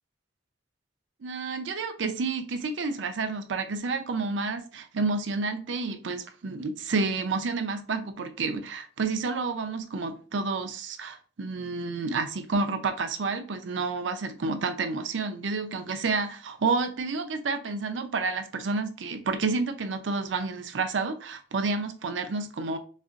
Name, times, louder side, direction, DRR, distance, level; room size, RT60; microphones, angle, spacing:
voice 1, 1.2-22.8, right 4 dB, 85° right, 0.6 m, -30 dB
4.2 x 2.5 x 2.4 m
head